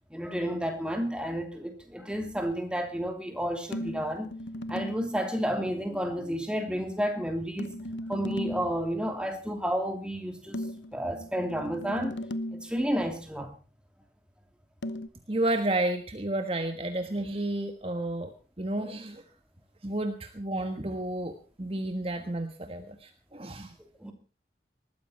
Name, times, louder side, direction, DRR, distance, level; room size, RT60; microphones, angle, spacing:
voice 1, 0.1-4.3 4.7-7.7 8.1-10.7 10.9-12.2 12.5-13.5 24.0-24.1, equal, 5° right, 2.8 m, -31 dB
sound 1, 3.7-5.1 7.6-8.8 10.5-12.8 14.8-15.1, left 1 dB, 85° left, 1.0 m, -36 dB
voice 2, 15.3-18.3 18.6-19.2 19.8-23.7, right 1 dB, 30° right, 1.4 m, -31 dB
20.0 x 14.5 x 4.3 m
head